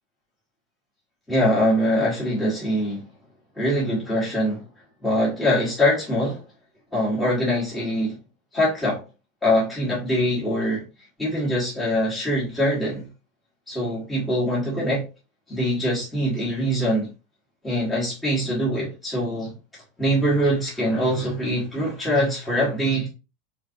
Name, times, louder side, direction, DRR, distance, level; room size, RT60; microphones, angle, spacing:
voice 1, 1.3-3.0 3.6-4.6 5.0-6.4 6.9-8.2 8.5-9.0 9.4-10.8 11.2-13.1 13.7-15.0 15.5-17.1 17.6-19.5 20.0-23.1, equal, 5° left, 1.6 m, -23 dB
4.0 x 3.3 x 2.8 m
supercardioid pair, 175°, 0 cm